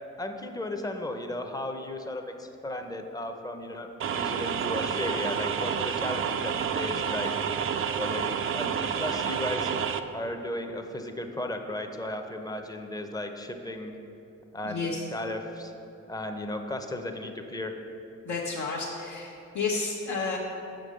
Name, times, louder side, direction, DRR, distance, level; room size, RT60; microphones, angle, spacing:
voice 1, 0.2-7.3 7.9-9.7 10.1-13.9 14.5-15.7 16.1-17.7, left 1 dB, 10° left, 5 dB, 0.6 m, -35 dB
sound 1, 4.0-10.0, right 7 dB, 45° right, 0.4 m, -29 dB
voice 2, 14.6-15.0 18.2-20.4, left 4 dB, 70° left, -3 dB, 0.9 m, -31 dB
6.3 x 5.2 x 6.4 m, 2.8 s
cardioid pair, 90°, 30 cm